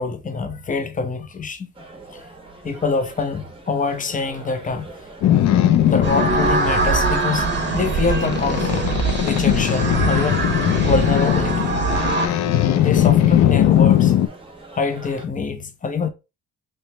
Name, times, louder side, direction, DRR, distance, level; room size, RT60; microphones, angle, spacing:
voice 1, 0.0-1.7 2.1-2.2 2.6-4.9 5.7-8.9 9.2-10.5 10.8-11.8 12.7-14.1 14.7-16.1, left 4 dB, 25° left, 0.7 m, -25 dB
sound 1, 1.7-15.3, right 2 dB, 15° right, 1.3 m, -41 dB
Boat Water vehicle, 5.2-14.3, left 11 dB, 65° left, 0.5 m, -19 dB
sound 2, 6.0-12.3, right 4 dB, 35° right, 1.0 m, -22 dB
3.1 x 3.1 x 3.3 m
cardioid pair, 90°, 30 cm